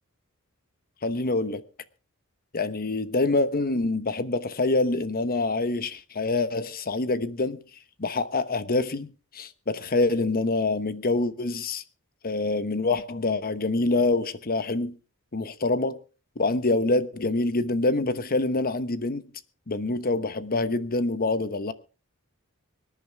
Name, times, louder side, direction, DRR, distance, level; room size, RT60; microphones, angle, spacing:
voice 1, 1.0-1.6 2.5-7.6 8.0-11.8 12.2-15.0 15.3-16.0 16.4-19.3 19.7-21.7, left 2 dB, 40° left, 1.1 m, -26 dB
24.5 x 10.5 x 3.5 m
head